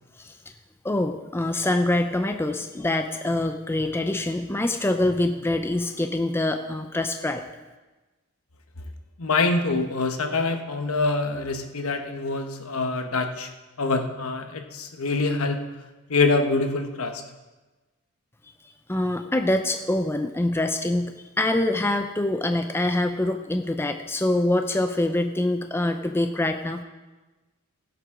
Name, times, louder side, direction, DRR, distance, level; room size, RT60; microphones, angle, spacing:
voice 1, 0.8-7.4 18.9-26.8, left 1 dB, 10° left, 6 dB, 0.5 m, -25 dB
voice 2, 9.2-13.5 13.8-15.7 16.1-17.2, left 3 dB, 75° left, 5 dB, 1.1 m, -25 dB
16.5 x 7.9 x 3.8 m, 1.2 s
head